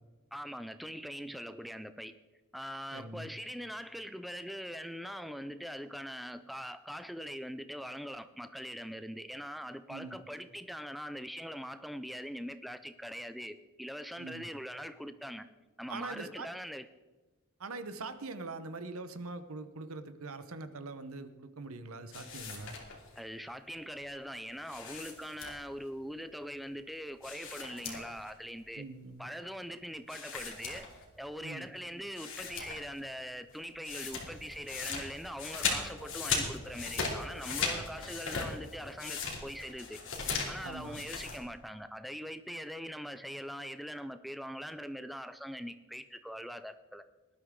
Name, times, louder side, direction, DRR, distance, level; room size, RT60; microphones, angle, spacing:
voice 1, 0.3-2.1 2.5-15.5 15.8-16.9 23.2-28.9 29.2-30.9 31.2-40.0 40.5-47.0, equal, ahead, 10 dB, 0.4 m, -42 dB
voice 2, 2.9-3.3 9.9-10.2 14.2-14.5 15.9-16.5 17.6-22.8 28.8-29.3 31.4-31.7 40.6-41.0, right 3 dB, 70° right, 11 dB, 1.0 m, -43 dB
sound 1, 22.1-23.2 24.6-25.8 27.2-28.3 28.6-28.7 30.1-31.3 31.8-31.9 32.2-33.0 33.3-41.4, left 5 dB, 60° left, 2.9 m, -38 dB
18.5 x 12.0 x 3.8 m, 1.2 s
head